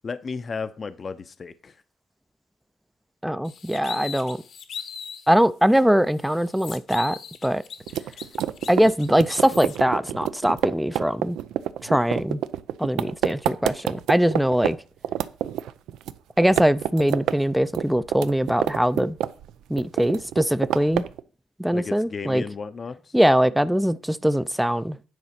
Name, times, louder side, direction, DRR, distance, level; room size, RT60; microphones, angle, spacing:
voice 1, 0.0-1.7 21.7-23.0, left 5 dB, 40° left, 0.6 m, -33 dB
voice 2, 3.2-4.4 5.3-7.6 8.7-11.4 11.8-12.4 12.8-14.8 16.4-19.2 19.7-21.0 21.6-22.4 23.1-25.0, equal, 5° right, 0.4 m, -22 dB
sound 1, 3.5-5.3 5.7-5.8 6.2-9.8, left 7 dB, 65° left, 1.1 m, -39 dB
sound 2, 7.9-14.7 15.0-16.2 16.4-17.4 17.6-19.5 19.8-21.2, right 11 dB, 85° right, 0.5 m, -27 dB
9.6 x 4.2 x 5.8 m
cardioid pair, 90°, 0 cm